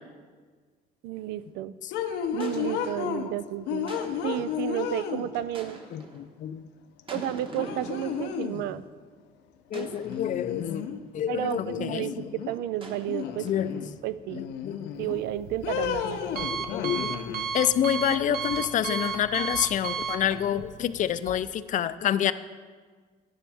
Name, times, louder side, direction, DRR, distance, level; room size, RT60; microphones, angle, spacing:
voice 1, 1.0-1.7 2.3-3.9 4.2-5.8 7.1-8.8 9.7-9.9 11.3-13.5 14.0-14.4 15.0-16.2, right 13 dB, 85° right, 15 dB, 0.4 m, -32 dB
sound 1, 1.1-1.5 2.4-3.2 3.9-4.7 5.5-6.3 7.1-8.7 9.7-11.0 12.8-14.0, right 2 dB, 30° right, 1.3 m, -45 dB
sound 2, 1.9-3.3 3.7-5.6 7.0-7.1 7.6-8.7 10.0-11.0 11.3-12.6 13.1-13.9 14.3-15.2 15.6-17.4, left 8 dB, 85° left, 0.7 m, -33 dB
voice 2, 5.9-6.6 9.7-10.8 11.1-12.1 13.1-13.2 13.4-13.9 14.4-14.9 16.0-22.3, left 10 dB, 50° left, 14 dB, 0.4 m, -28 dB
Alarm, 14.9-21.3, right 6 dB, 60° right, 0.9 m, -35 dB
10.5 x 10.0 x 3.5 m, 1.5 s
cardioid pair, 110°, 17 cm